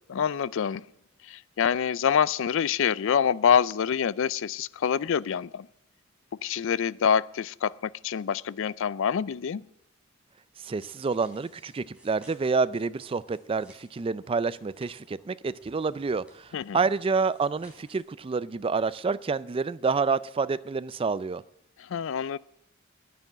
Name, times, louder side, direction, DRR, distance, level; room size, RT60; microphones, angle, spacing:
voice 1, 0.1-0.9 1.2-5.7 6.4-9.6 16.5-16.8 21.8-22.4, left 7 dB, 65° left, 0.4 m, -26 dB
voice 2, 10.6-21.4, right 4 dB, 25° right, 0.4 m, -28 dB
sound 1, 10.8-18.0, right 1 dB, 5° right, 3.6 m, -59 dB
9.9 x 9.3 x 9.0 m
head